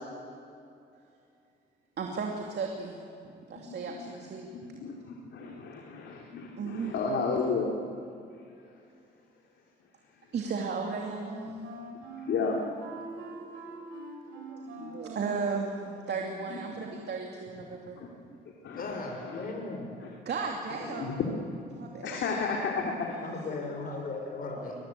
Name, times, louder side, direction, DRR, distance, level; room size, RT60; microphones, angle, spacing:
voice 1, 2.0-3.0 3.5-4.5 5.4-5.8 6.6-6.9 10.3-11.3 13.9-18.0 20.2-21.2 21.8-22.2 23.3-23.4 23.8-24.0, right 5 dB, 55° right, 1 dB, 2.7 m, -35 dB
voice 2, 3.6-4.1 4.5-7.7 12.2-12.6 16.5-16.8 18.0-18.1 18.6-19.4 20.0-20.1 20.8-21.3 22.0-23.1, left 4 dB, 70° left, -1 dB, 3.1 m, -33 dB
Wind instrument woodwind instrument, 10.5-16.4, right 2 dB, 85° right, 4.3 m, -44 dB
voice 3, 18.7-19.9 23.2-24.8, left 3 dB, 50° left, 2 dB, 5.3 m, -37 dB
23.0 x 19.5 x 8.6 m, 2.6 s
cardioid pair, 90°, 20 cm